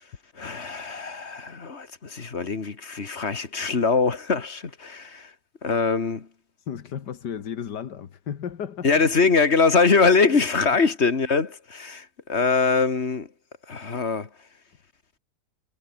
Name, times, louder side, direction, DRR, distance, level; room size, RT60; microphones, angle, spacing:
voice 1, 0.4-5.3 5.6-6.3 8.8-13.3 13.7-14.3, left 4 dB, 40° left, 2.1 m, -23 dB
voice 2, 6.6-9.0, left 8 dB, 80° left, 2.0 m, -34 dB
omnidirectional pair, 1.8 m